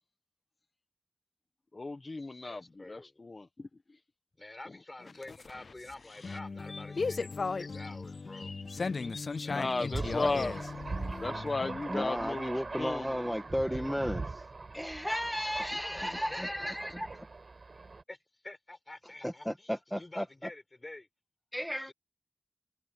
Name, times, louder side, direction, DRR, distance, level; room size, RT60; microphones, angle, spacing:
voice 1, 1.7-3.7 4.7-4.8 9.5-10.6 10.9-13.4, left 3 dB, 55° left, 1.3 m, -35 dB
voice 2, 2.4-3.1 4.4-8.5 9.4-10.3 15.8-16.8 18.1-21.1 21.8-21.9, left 2 dB, 35° left, 7.4 m, -48 dB
sound 1, 5.0-11.8, left 4 dB, 75° left, 0.3 m, -37 dB
Thunder, 9.9-18.0, right 3 dB, 65° right, 6.2 m, -41 dB
voice 3, 11.9-14.4 14.7-17.3 19.2-20.5 21.5-21.9, equal, 5° left, 1.9 m, -34 dB
wide cardioid pair, 75°, 0 cm